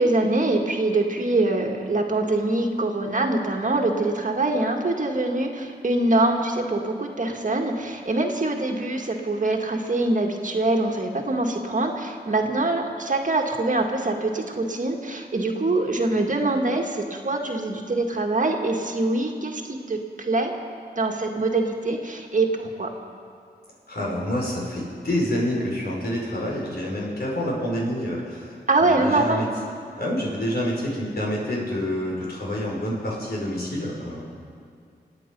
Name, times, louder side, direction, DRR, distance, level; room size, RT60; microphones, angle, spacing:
voice 1, 0.0-20.5 21.0-22.9 28.7-29.5, right 2 dB, 45° right, 2 dB, 1.8 m, -24 dB
voice 2, 23.9-28.6 28.9-29.5 30.0-34.2, equal, 65° left, -4 dB, 5.3 m, -27 dB
26.5 x 9.2 x 5.4 m, 2.3 s
cardioid pair, 60°, 18 cm